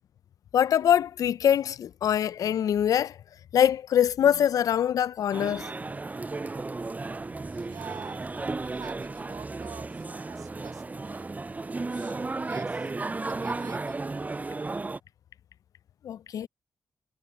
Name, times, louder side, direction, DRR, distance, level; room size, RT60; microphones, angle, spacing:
voice 1, 0.5-3.2 3.5-5.7 16.0-16.5, left 9 dB, 80° left, 0.3 m, -23 dB
sound 1, 5.3-15.0, right 3 dB, 25° right, 0.4 m, -34 dB
voice 2, 7.4-11.3 11.9-12.9 13.3-14.1, right 8 dB, 80° right, 7.1 m, -47 dB
supercardioid pair, 40°, 6 cm